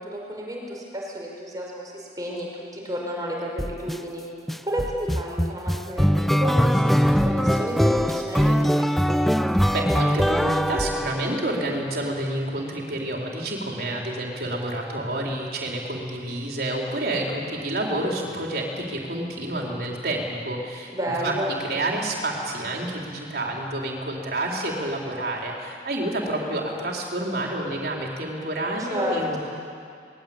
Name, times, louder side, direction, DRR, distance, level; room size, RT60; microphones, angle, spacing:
voice 1, 0.0-2.5 2.7-4.2 4.6-9.2 20.9-21.6 28.8-29.4, equal, 20° right, -2 dB, 5.2 m, -31 dB
sound 1, 3.6-4.0 4.5-11.7, equal, ahead, 0.5 m, -22 dB
voice 2, 9.7-20.9 21.2-21.3 21.6-29.4, right 1 dB, 60° right, -1 dB, 4.2 m, -29 dB
22.5 x 20.0 x 8.9 m, 2.3 s
head